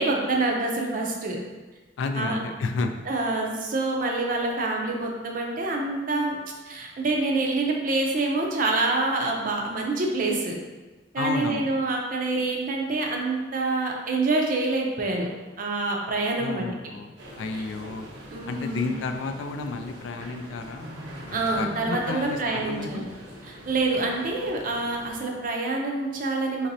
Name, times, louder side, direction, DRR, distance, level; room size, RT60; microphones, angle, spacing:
voice 1, 0.0-1.4 2.1-2.4 3.1-6.4 6.7-10.6 11.1-15.3 15.6-16.7 17.5-17.6 18.3-18.9 21.3-23.1 23.5-26.7, right 2 dB, 45° right, 1 dB, 0.5 m, -26 dB
voice 2, 2.0-3.0 11.2-11.8 16.4-18.1 18.5-20.9 21.3-23.0, left 3 dB, 75° left, 6 dB, 0.3 m, -31 dB
sound 1, 17.2-25.2, equal, 80° right, 0.7 m, -43 dB
4.0 x 3.0 x 2.7 m, 1.2 s
head